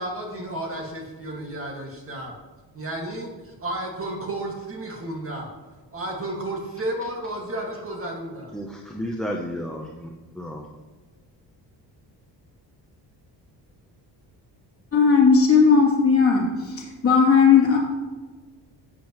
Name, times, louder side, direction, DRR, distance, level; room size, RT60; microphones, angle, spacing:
voice 1, 0.0-2.4 2.7-5.5 5.9-8.5, right 1 dB, 30° right, 0 dB, 1.9 m, -32 dB
voice 2, 8.5-10.7, equal, ahead, 0 dB, 0.7 m, -32 dB
voice 3, 14.9-17.8, left 5 dB, 30° left, -4 dB, 2.9 m, -17 dB
13.0 x 8.5 x 3.0 m, 1.3 s
cardioid pair, 155°, 43 cm